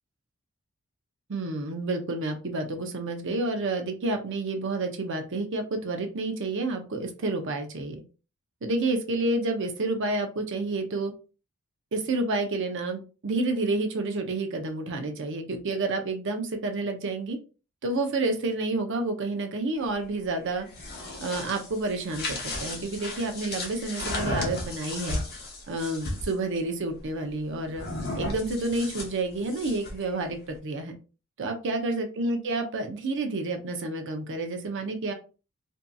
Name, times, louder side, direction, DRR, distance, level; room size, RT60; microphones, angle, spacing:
voice 1, 1.3-8.0 8.6-11.1 11.9-17.4 17.8-20.7 21.2-25.2 25.7-27.9 28.1-30.9 31.4-35.1, right 2 dB, 55° right, 5 dB, 0.6 m, -29 dB
sound 1, 20.6-26.3 27.7-30.0, left 2 dB, 45° left, 0.8 m, -34 dB
2.7 x 2.6 x 2.2 m, 0.33 s
head